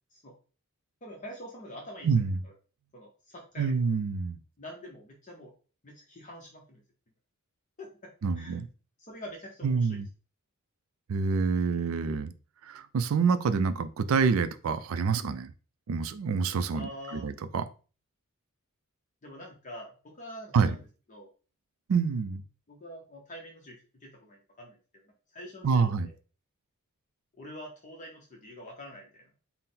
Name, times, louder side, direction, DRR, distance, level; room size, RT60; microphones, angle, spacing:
voice 1, 1.0-2.1 2.4-2.5 2.9-3.8 4.6-5.5 5.8-6.8 7.8-8.6 9.0-10.0 16.7-17.3 19.2-21.3 22.7-25.0 25.3-26.1 27.4-29.2, equal, 35° left, 0.7 m, -46 dB
voice 2, 2.0-2.4 3.6-4.4 8.2-8.7 9.6-10.1 11.1-12.3 12.6-15.5 15.9-17.7 20.5-20.7 21.9-22.4 25.6-26.1, right 5 dB, 70° right, 0.4 m, -27 dB
4.1 x 2.0 x 3.8 m
head